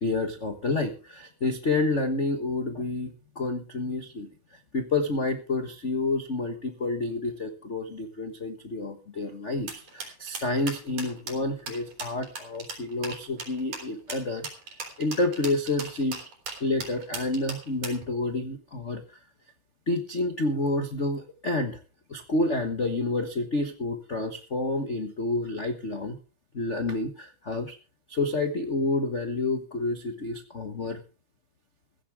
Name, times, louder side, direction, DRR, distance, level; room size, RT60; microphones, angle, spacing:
voice 1, 0.0-14.5 15.0-16.2 16.6-19.0 19.9-21.8 22.1-26.2 26.5-27.8 28.1-31.0, left 2 dB, 70° left, 6 dB, 0.6 m, -29 dB
sound 1, 9.7-18.0, right 4 dB, 70° right, 5.3 m, -37 dB
15.5 x 15.0 x 3.5 m, 0.35 s
omnidirectional pair, 3.6 m